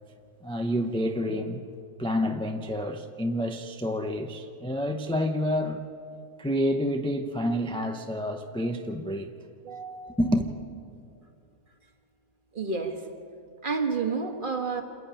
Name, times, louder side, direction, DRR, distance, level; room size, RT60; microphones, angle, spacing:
voice 1, 0.4-1.7 2.0-5.8 6.4-9.4 10.2-10.5, equal, 5° left, 0.4 m, -28 dB
voice 2, 9.6-10.2 12.5-13.0 13.6-14.8, right 4 dB, 35° right, 1.6 m, -30 dB
27.0 x 11.0 x 8.8 m
omnidirectional pair, 1.6 m